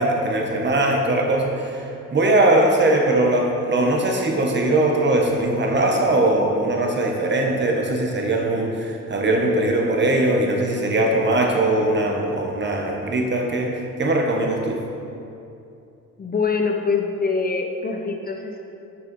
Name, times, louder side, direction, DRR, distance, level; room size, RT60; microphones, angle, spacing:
voice 1, 0.0-1.5 2.1-14.8, right 1 dB, 35° right, 1 dB, 1.3 m, -20 dB
voice 2, 16.2-18.6, left 4 dB, 30° left, 3 dB, 0.7 m, -24 dB
6.9 x 6.4 x 5.4 m, 2.7 s
cardioid pair, 90°, 30 cm